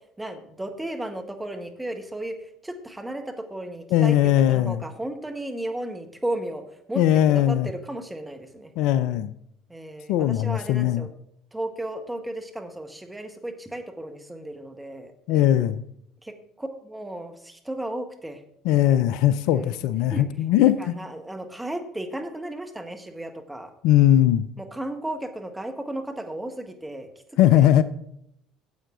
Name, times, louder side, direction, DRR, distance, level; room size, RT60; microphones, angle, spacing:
voice 1, 0.2-7.0 7.3-8.7 9.7-11.1 11.5-15.1 16.2-18.4 19.5-20.3 20.8-23.7 24.6-27.1 27.5-27.7, right 1 dB, 10° right, 6 dB, 1.5 m, -34 dB
voice 2, 3.9-4.8 7.0-7.7 8.8-9.3 10.1-11.1 15.3-15.8 18.6-20.8 23.8-24.5 27.4-27.8, left 12 dB, 65° left, 15 dB, 0.4 m, -19 dB
9.5 x 7.6 x 3.8 m, 0.73 s
hypercardioid pair, 65°, 0 cm